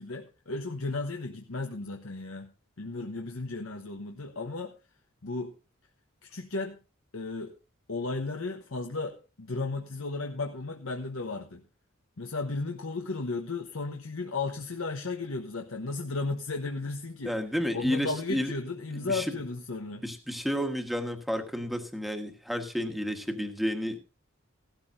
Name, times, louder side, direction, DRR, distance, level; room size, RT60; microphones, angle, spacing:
voice 1, 0.0-2.5 2.8-4.7 5.2-5.5 6.2-6.8 7.1-7.5 7.9-11.6 12.2-17.3 17.7-20.0, left 3 dB, 80° left, 3 dB, 1.1 m, -34 dB
voice 2, 17.2-18.5 18.9-19.3 20.0-24.0, equal, ahead, 6 dB, 1.4 m, -31 dB
16.0 x 13.0 x 2.7 m, 0.30 s
head